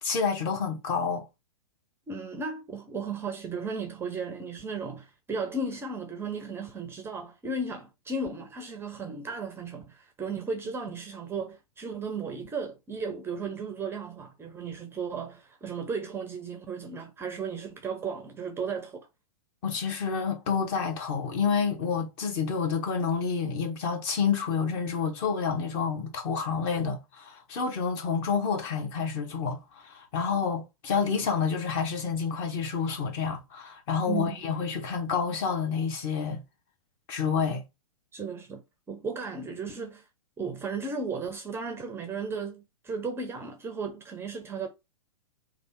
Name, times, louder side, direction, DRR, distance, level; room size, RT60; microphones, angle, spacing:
voice 1, 0.0-1.3 19.6-36.4 37.1-37.6, left 6 dB, 35° left, 1.3 m, -29 dB
voice 2, 2.1-19.1 34.1-34.6 38.1-40.0 40.4-44.7, right 4 dB, 10° right, 0.6 m, -35 dB
3.3 x 2.5 x 4.4 m
figure-of-eight pair, 115°, 19 cm